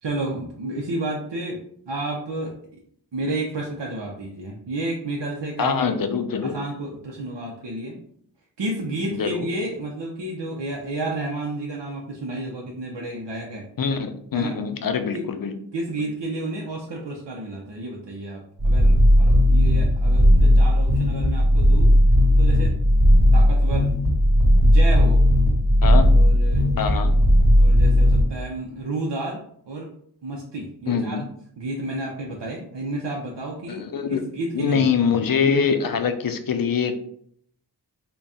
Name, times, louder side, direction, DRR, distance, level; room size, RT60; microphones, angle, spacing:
voice 1, 0.0-2.5 3.1-5.9 6.4-8.0 8.6-13.7 14.3-14.6 15.1-15.2 15.7-21.9 22.4-22.8 23.3-23.9 24.6-25.2 25.9-26.7 27.6-29.9 30.2-31.2 31.6-35.2, right 2 dB, 80° right, -2 dB, 0.7 m, -31 dB
voice 2, 5.6-6.6 9.1-9.5 13.8-15.5 16.0-16.1 25.8-26.1 26.8-27.2 30.9-31.3 33.7-34.2 34.5-36.9, left 6 dB, 55° left, 8 dB, 0.5 m, -24 dB
sound 1, 18.6-28.2, equal, 60° right, 1.4 m, -16 dB
3.9 x 2.3 x 3.5 m, 0.65 s
wide cardioid pair, 60°, 43 cm